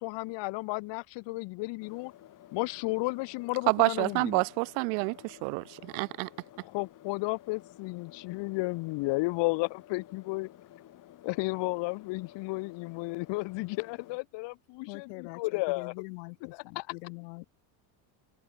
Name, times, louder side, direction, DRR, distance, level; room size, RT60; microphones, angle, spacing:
voice 1, 0.0-2.1 2.5-4.3 6.7-10.5 11.2-15.9 16.7-16.9, left 24 dB, 60° left, 1.7 m, -33 dB
sound 1, 1.8-14.2, left 13 dB, 40° left, 2.9 m, -54 dB
voice 2, 3.7-6.3, right 40 dB or more, 75° right, 2.0 m, -28 dB
voice 3, 14.9-17.4, left 33 dB, 80° left, 7.6 m, -43 dB
open air
cardioid pair, 150°, 49 cm